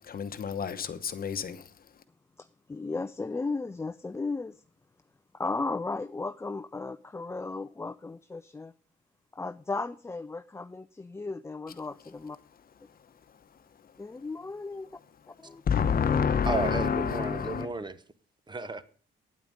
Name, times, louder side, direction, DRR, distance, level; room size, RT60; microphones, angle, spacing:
voice 1, 0.0-1.7 13.3-13.4 13.8-13.9 15.6-17.7, left 6 dB, 45° left, 1.0 m, -28 dB
voice 2, 2.4-4.6 5.3-8.7 9.3-12.4 14.0-14.9 15.4-15.6, left 3 dB, 15° left, 0.4 m, -35 dB
voice 3, 16.5-18.0 18.5-18.8, right 3 dB, 20° right, 1.0 m, -33 dB
9.4 x 8.8 x 6.4 m
cardioid pair, 90°, 20 cm